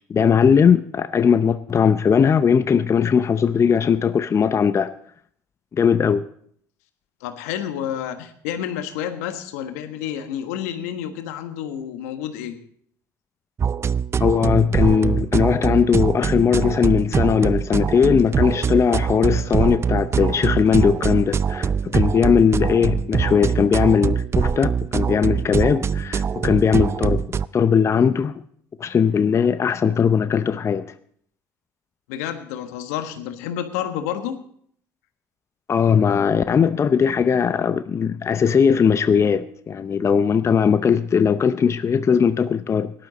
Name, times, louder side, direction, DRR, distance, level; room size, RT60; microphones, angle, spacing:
voice 1, 0.1-4.9 5.7-6.2 14.2-27.2 27.5-28.3 28.8-30.9 35.7-42.9, left 7 dB, 35° left, 12 dB, 0.6 m, -19 dB
voice 2, 7.2-12.6 32.1-34.4, left 10 dB, 75° left, 8 dB, 1.4 m, -29 dB
sound 1, 13.6-27.5, right 6 dB, 30° right, 0.5 m, -23 dB
17.5 x 11.5 x 4.1 m, 0.64 s
hypercardioid pair, 65°, 8 cm